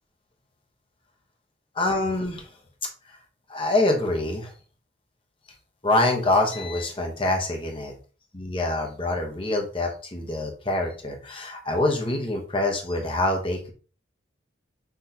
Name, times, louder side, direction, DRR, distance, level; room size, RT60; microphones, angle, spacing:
voice 1, 1.7-2.5 3.1-3.2 3.5-4.5 5.8-7.9 8.3-13.7, left 2 dB, 25° left, 2 dB, 0.9 m, -25 dB
5.9 x 3.1 x 2.7 m, 0.38 s
head